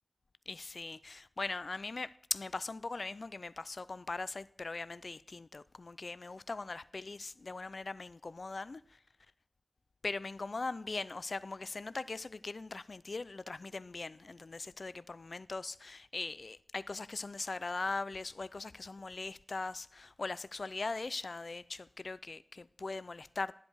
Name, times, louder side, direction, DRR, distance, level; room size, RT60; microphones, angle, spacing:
voice 1, 0.5-9.0 10.0-23.5, left 3 dB, 55° left, 0.3 m, -40 dB
10.5 x 8.0 x 4.6 m
wide cardioid pair, 75°, 0 cm